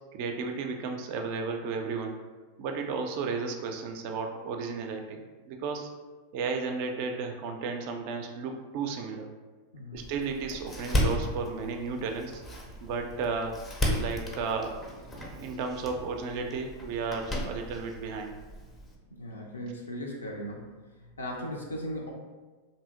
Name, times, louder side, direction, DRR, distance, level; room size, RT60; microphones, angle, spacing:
voice 1, 0.1-2.2 2.6-5.9 6.3-9.3 9.9-12.4 12.8-13.5 14.0-14.8 15.2-18.4, right 4 dB, 45° right, 4 dB, 0.3 m, -33 dB
Door, 10.0-19.0, equal, 15° left, 0.4 m, -34 dB
voice 2, 19.1-20.7 21.0-22.1, equal, 75° left, -1 dB, 0.4 m, -37 dB
2.7 x 2.6 x 2.4 m, 1.3 s
figure-of-eight pair, 90°, 0 cm